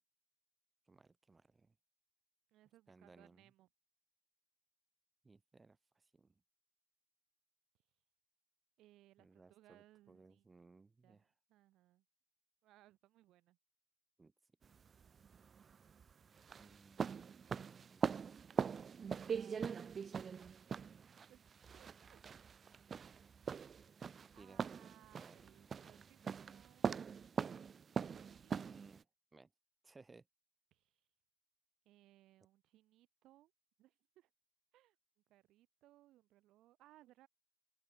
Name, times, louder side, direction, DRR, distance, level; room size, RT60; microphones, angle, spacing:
voice 1, 0.9-1.7 2.9-3.4 5.2-6.3 9.2-11.3 14.2-14.3 16.6-17.2 17.9-18.3 24.4-25.5 28.5-29.1 29.3-29.5 29.8-30.2, right 3 dB, 25° right, 2.8 m, -63 dB
voice 2, 2.5-3.7 8.8-10.5 11.0-12.0 12.6-13.6 16.5-16.8 19.1-19.9 20.2-21.4 21.7-22.6 24.3-27.4 28.1-28.6 30.7-31.0 31.8-33.5 33.8-34.3 34.7-35.0 35.3-37.3, right 15 dB, 90° right, 2.4 m, -67 dB
sound 1, 14.6-29.0, right 6 dB, 45° right, 0.8 m, -42 dB
cardioid pair, 90°, 0 cm